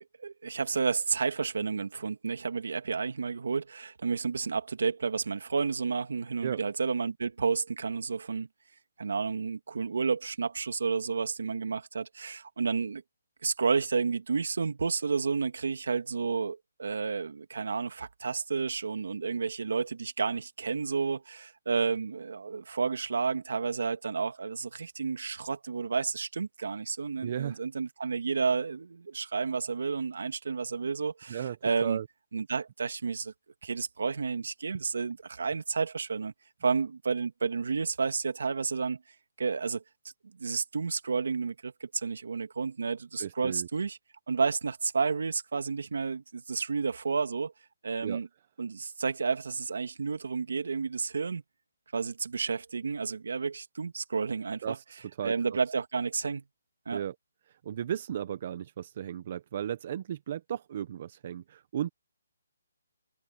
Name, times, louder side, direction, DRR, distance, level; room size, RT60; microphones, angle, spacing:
voice 1, 0.2-8.5 9.0-13.0 13.4-32.0 32.3-33.3 33.6-36.3 36.6-39.0 39.4-39.8 40.4-44.0 44.3-47.5 47.8-48.3 48.6-51.4 51.9-54.8 55.2-56.4 56.9-57.0, right 5 dB, 75° right, 2.6 m, -31 dB
voice 2, 27.2-27.6 31.3-31.6 31.8-32.1 43.2-43.7 48.0-48.2 54.6-55.3 56.9-57.1 57.6-61.9, right 10 dB, 40° right, 1.1 m, -35 dB
open air
hypercardioid pair, 165°, 0 cm